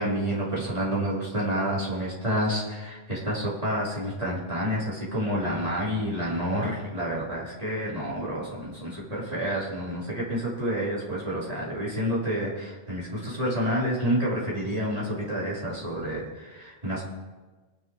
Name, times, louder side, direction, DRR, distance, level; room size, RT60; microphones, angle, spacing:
voice 1, 0.0-17.0, equal, 35° right, -8 dB, 4.2 m, -29 dB
23.0 x 10.0 x 3.2 m, 1.3 s
omnidirectional pair, 1.1 m